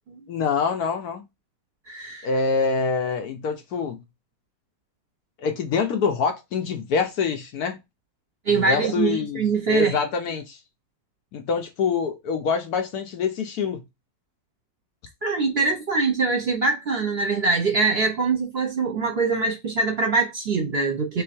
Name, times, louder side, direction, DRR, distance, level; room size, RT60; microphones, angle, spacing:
voice 1, 0.3-1.3 2.2-4.0 5.4-7.8 8.5-9.4 9.7-10.6 11.3-13.8, left 5 dB, 65° left, 1.1 m, -25 dB
voice 2, 1.9-2.3 8.4-10.0 15.2-21.2, right 4 dB, 45° right, 1.0 m, -23 dB
3.7 x 2.9 x 4.3 m
omnidirectional pair, 1.9 m